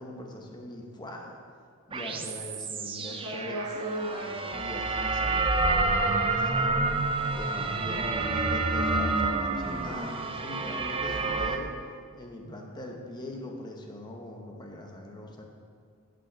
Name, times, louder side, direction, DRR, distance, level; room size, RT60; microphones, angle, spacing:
voice 1, 0.0-1.4 1.9-3.6 4.5-6.9 7.3-11.7 12.1-15.4, left 1 dB, 20° left, 1 dB, 1.0 m, -41 dB
sound 1, 1.9-11.6, right 3 dB, 25° right, 0.4 m, -28 dB
voice 2, 3.0-4.6, right 1 dB, 70° right, -11 dB, 2.0 m, -35 dB
10.5 x 5.3 x 4.6 m, 2.1 s
head